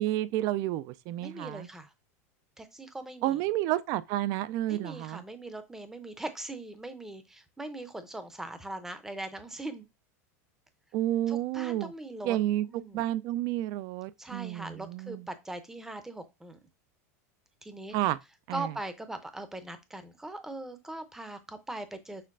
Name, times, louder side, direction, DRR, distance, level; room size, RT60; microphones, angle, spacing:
voice 1, 0.0-1.7 3.2-5.2 10.9-11.9 12.2-12.7 12.9-15.2 17.9-18.2 18.5-18.7, right 14 dB, 45° right, 0.3 m, -30 dB
voice 2, 1.2-1.9 2.6-3.4 4.7-9.9 11.3-12.4 12.7-13.0 14.2-16.6 17.6-18.0 18.5-22.3, right 2 dB, 5° right, 0.6 m, -40 dB
6.5 x 3.2 x 2.5 m
supercardioid pair, 140°, 8 cm